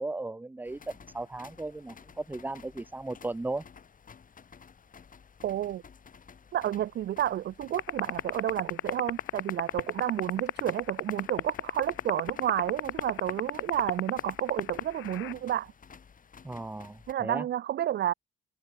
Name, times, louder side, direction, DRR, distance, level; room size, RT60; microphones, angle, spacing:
voice 1, 0.0-3.6 16.4-17.5, right 2 dB, 10° right, 0.7 m, -36 dB
sound 1, 0.6-17.1, left 6 dB, 45° left, 5.3 m, -53 dB
voice 2, 5.4-5.8 6.5-15.7 17.1-18.1, right 11 dB, 60° right, 0.5 m, -31 dB
sound 2, 7.8-15.3, left 16 dB, 75° left, 0.4 m, -28 dB
cardioid pair, 90°, 20 cm